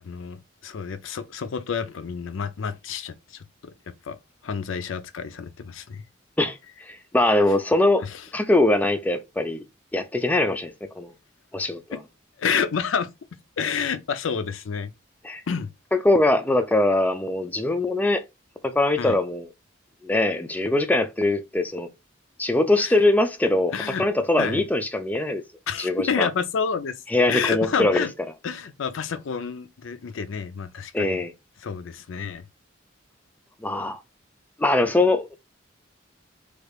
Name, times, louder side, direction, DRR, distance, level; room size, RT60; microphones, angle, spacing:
voice 1, 0.0-4.2 4.4-6.0 8.0-8.2 12.4-13.1 13.6-14.9 15.5-15.7 19.0-19.2 22.8-22.9 23.7-24.0 24.4-24.6 25.7-26.9 27.3-28.1 28.4-31.2 31.6-32.4, left 6 dB, 85° left, 0.5 m, -29 dB
voice 2, 6.9-8.1 8.3-9.6 9.9-11.1 11.5-12.0 15.2-15.4 15.9-18.2 18.6-19.5 20.0-21.9 22.4-25.4 25.8-26.3 27.1-28.1 30.9-31.3 33.6-34.0 34.6-35.4, left 2 dB, 10° left, 0.3 m, -22 dB
3.3 x 3.2 x 2.3 m
head